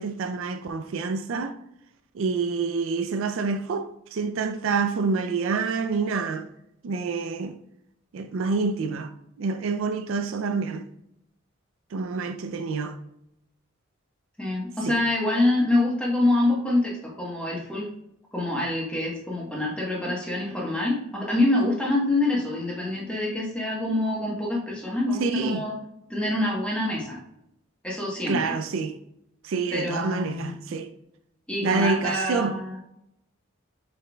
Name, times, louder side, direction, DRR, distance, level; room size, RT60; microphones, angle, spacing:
voice 1, 0.0-1.5 2.1-6.5 6.8-7.6 8.1-9.1 9.4-10.9 11.9-13.0 14.9-15.0 25.2-25.7 28.3-28.9 29.4-30.9 31.6-32.6, right 4 dB, 65° right, 0.3 m, -27 dB
voice 2, 14.4-17.9 18.3-25.7 26.1-27.2 27.8-28.5 29.7-30.6 31.5-32.8, left 2 dB, 5° left, 1.0 m, -26 dB
5.1 x 4.1 x 2.2 m
head